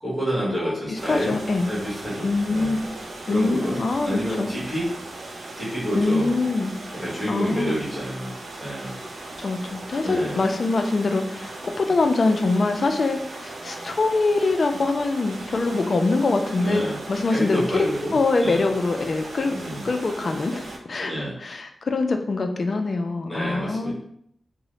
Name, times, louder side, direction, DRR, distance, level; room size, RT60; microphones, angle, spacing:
voice 1, 0.0-1.4 1.7-2.8 3.3-3.8 4.0-4.9 5.5-6.4 6.9-8.3 8.6-9.0 10.0-10.4 16.6-17.0 17.2-18.7 19.5-19.9 21.0-21.4 23.2-23.9, equal, 20° right, -8 dB, 1.3 m, -28 dB
sound 1, 0.9-20.8, right 2 dB, 80° right, 0.5 m, -38 dB
voice 2, 1.1-1.7 2.2-2.8 3.3-4.5 5.9-6.7 7.3-7.8 9.4-17.6 18.1-19.6 19.8-21.1 21.4-23.9, left 3 dB, 50° left, 5 dB, 0.3 m, -24 dB
3.6 x 2.0 x 3.1 m, 0.70 s
wide cardioid pair, 130°, 0 cm